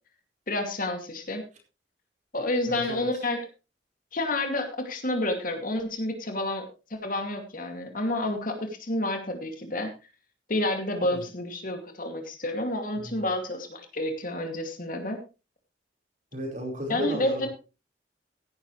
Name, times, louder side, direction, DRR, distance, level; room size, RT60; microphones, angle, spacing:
voice 1, 0.5-1.4 2.3-3.4 4.1-9.9 10.5-15.2 16.9-17.5, left 1 dB, 45° left, 5 dB, 2.4 m, -29 dB
voice 2, 2.7-3.0 11.0-11.2 13.0-13.2 16.3-17.5, left 1 dB, 40° right, 2 dB, 4.6 m, -34 dB
16.0 x 11.5 x 3.2 m, 0.31 s
head